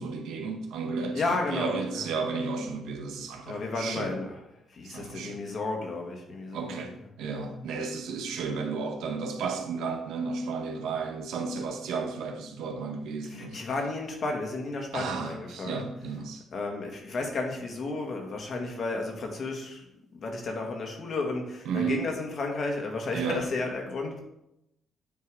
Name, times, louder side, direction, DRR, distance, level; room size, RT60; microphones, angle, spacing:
voice 1, 0.0-4.1 4.8-5.4 6.5-6.9 7.2-13.6 14.9-16.4 21.6-22.0 23.1-23.4, right 5 dB, 85° right, 4 dB, 1.0 m, -33 dB
voice 2, 1.1-2.1 3.5-4.4 4.7-6.9 13.2-15.9 16.5-19.8 20.1-24.2, left 3 dB, 55° left, 2 dB, 1.8 m, -33 dB
9.4 x 3.6 x 4.8 m, 0.84 s
cardioid pair, 90°, 0 cm